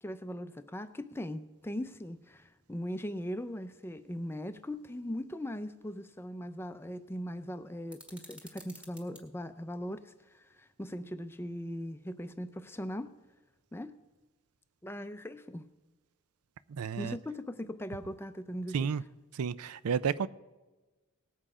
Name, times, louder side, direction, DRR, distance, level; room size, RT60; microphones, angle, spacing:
voice 1, 0.0-13.1 13.7-14.0 14.8-15.7 17.0-18.8, equal, 10° left, 0.4 m, -39 dB
sound 1, 7.9-9.2, equal, 5° right, 1.3 m, -52 dB
voice 2, 16.7-17.2 18.7-19.0 19.3-20.3, right 6 dB, 90° right, 0.4 m, -31 dB
18.0 x 7.7 x 4.9 m
head